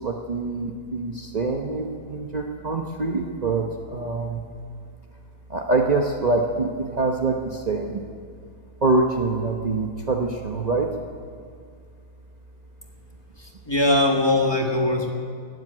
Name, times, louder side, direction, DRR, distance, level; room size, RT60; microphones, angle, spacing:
voice 1, 0.0-4.4 5.5-8.0 8.8-10.9, right 3 dB, 60° right, 1 dB, 0.4 m, -25 dB
voice 2, 13.4-15.1, left 1 dB, 15° left, 1 dB, 1.3 m, -21 dB
17.5 x 7.7 x 9.8 m, 2.1 s
omnidirectional pair, 2.3 m